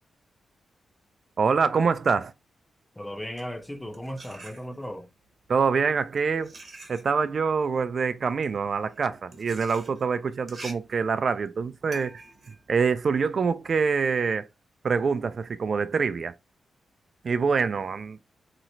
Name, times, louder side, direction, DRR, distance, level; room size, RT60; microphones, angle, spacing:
voice 1, 1.4-2.3 5.5-6.5 6.9-12.2 12.7-14.5 14.8-16.3 17.2-18.2, right 5 dB, 55° right, 0.3 m, -25 dB
voice 2, 3.0-5.1, equal, 10° left, 0.5 m, -36 dB
sound 1, 3.1-5.1 5.8-13.7, right 2 dB, 40° right, 0.8 m, -47 dB
3.1 x 2.9 x 2.6 m
cardioid pair, 65°, 0 cm